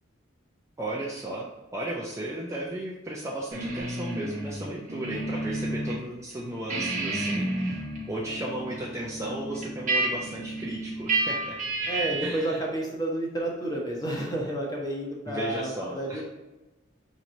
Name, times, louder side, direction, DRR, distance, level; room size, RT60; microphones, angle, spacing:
voice 1, 0.8-11.6 11.8-12.6 15.3-16.2, right 1 dB, 15° right, -3 dB, 0.4 m, -35 dB
sound 1, 3.5-6.0 6.3-12.5, right 2 dB, 40° right, 0.8 m, -31 dB
voice 2, 11.9-15.7 16.0-16.2, right 1 dB, 20° left, -2 dB, 0.8 m, -30 dB
5.3 x 3.0 x 2.5 m, 1.1 s
head